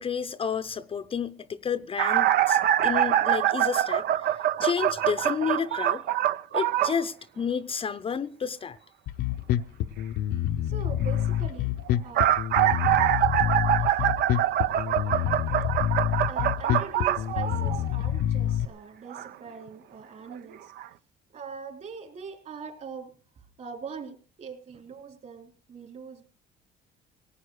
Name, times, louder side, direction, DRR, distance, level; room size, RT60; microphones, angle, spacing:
voice 1, 0.0-6.0 6.5-8.8, left 6 dB, 35° left, 0.6 m, -31 dB
sound 1, 2.0-7.0 11.9-18.0 19.1-19.3 20.3-20.4 20.8-20.9, right 12 dB, 70° right, 0.7 m, -24 dB
Bass guitar, 9.1-18.7, left 11 dB, 75° left, 0.8 m, -27 dB
voice 2, 10.6-11.7 12.0-12.4 16.3-20.7 21.3-26.2, right 5 dB, 45° right, 3.7 m, -42 dB
18.0 x 8.6 x 6.4 m
cardioid pair, 110°, 17 cm